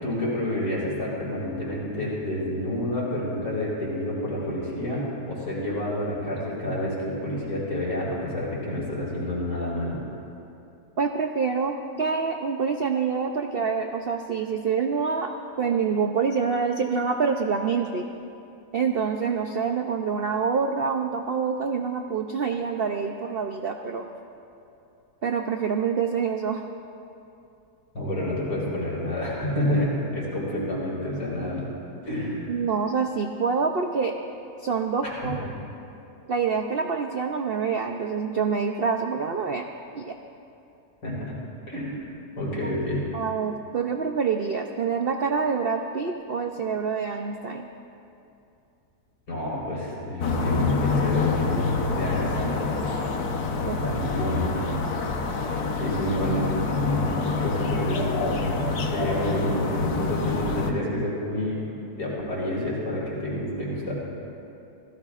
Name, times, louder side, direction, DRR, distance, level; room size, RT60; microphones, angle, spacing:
voice 1, 0.0-10.0 27.9-31.7 32.0-32.5 35.2-35.3 41.0-41.4 41.7-42.0 42.4-43.1 49.3-51.6 51.9-52.6 53.8-54.6 55.8-63.9, left 1 dB, 80° left, -6 dB, 5.4 m, -29 dB
voice 2, 11.0-15.3 15.6-18.0 18.7-24.1 25.2-26.6 32.5-34.1 34.6-35.5 36.3-39.7 39.9-40.2 42.6-42.8 43.1-47.7 53.6-53.9 60.8-60.9, right 5 dB, 75° right, 4 dB, 0.5 m, -26 dB
sound 1, 50.2-60.7, left 4 dB, 65° left, 1.5 m, -26 dB
27.0 x 17.0 x 2.5 m, 2.7 s
omnidirectional pair, 1.8 m